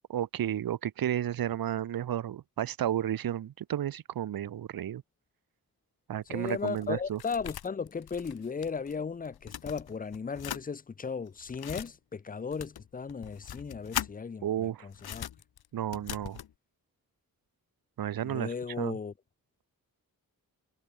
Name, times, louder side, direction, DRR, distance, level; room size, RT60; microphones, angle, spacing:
voice 1, 0.1-5.0 6.1-7.2 14.4-14.9 15.7-16.4 18.0-19.0, right 11 dB, 70° right, 0.6 m, -32 dB
sound 1, 6.2-9.0 9.2-10.6 11.3-11.9 12.5-14.1 14.9-16.5, left 10 dB, 85° left, 0.7 m, -40 dB
voice 2, 6.3-15.3 18.2-19.1, left 5 dB, 25° left, 0.4 m, -36 dB
wide cardioid pair, 95°, 37 cm